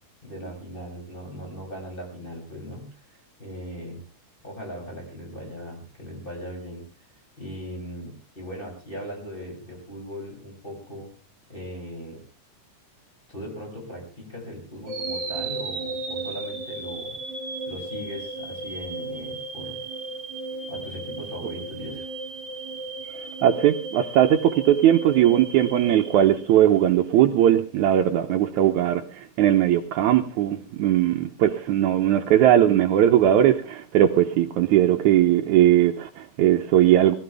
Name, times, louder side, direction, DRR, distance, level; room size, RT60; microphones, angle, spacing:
voice 1, 0.2-4.0 4.4-6.8 7.4-11.1 11.5-12.2 13.3-17.2 17.7-19.8 20.7-22.1, equal, 15° left, -1 dB, 8.1 m, -38 dB
sound 1, 14.9-27.0, right 3 dB, 45° right, 4.5 m, -35 dB
voice 2, 23.4-37.2, right 11 dB, 70° right, 6 dB, 2.2 m, -19 dB
20.5 x 15.5 x 3.5 m, 0.38 s
omnidirectional pair, 3.7 m